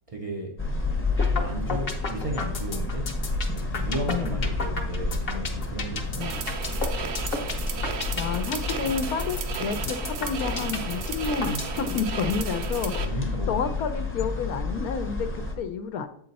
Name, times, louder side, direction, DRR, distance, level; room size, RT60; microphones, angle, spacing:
voice 1, 0.1-0.6 1.4-3.2 3.5-6.3 13.0-13.7, right 1 dB, 50° right, 0.4 m, -34 dB
sound 1, 0.6-15.5, left 3 dB, 10° left, 0.7 m, -30 dB
sound 2, 1.2-1.4 1.7-11.8, left 4 dB, 45° left, 1.0 m, -32 dB
voice 2, 4.1-4.4 6.1-6.4 8.1-13.1 13.5-16.1, left 6 dB, 85° left, 1.2 m, -30 dB
sound 3, 6.2-13.0, right 6 dB, 80° right, 1.2 m, -35 dB
7.6 x 4.5 x 4.0 m
omnidirectional pair, 1.5 m